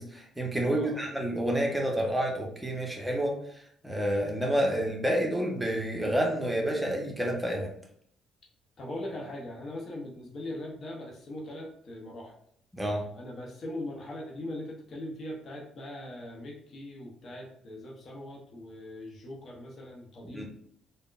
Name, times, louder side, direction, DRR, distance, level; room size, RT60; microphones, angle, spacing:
voice 1, 0.0-7.7 12.7-13.0 20.2-20.4, right 1 dB, 10° right, 0 dB, 0.8 m, -29 dB
voice 2, 0.7-1.1 8.8-12.3 13.1-20.4, left 1 dB, 50° left, -2 dB, 0.7 m, -40 dB
3.5 x 2.1 x 2.4 m, 0.65 s
hypercardioid pair, 50°, 0 cm